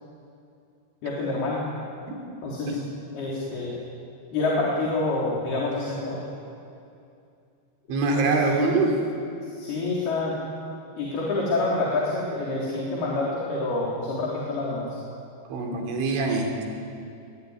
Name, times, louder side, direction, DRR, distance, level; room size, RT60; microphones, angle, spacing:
voice 1, 1.0-1.7 2.4-2.7 3.1-3.8 4.3-6.2 8.4-8.5 9.6-10.4 11.0-14.9, left 2 dB, 60° left, -4 dB, 5.5 m, -27 dB
voice 2, 7.9-9.0 15.5-16.7, right 3 dB, 85° right, 1 dB, 5.8 m, -24 dB
24.0 x 22.5 x 9.7 m, 2.5 s
omnidirectional pair, 5.3 m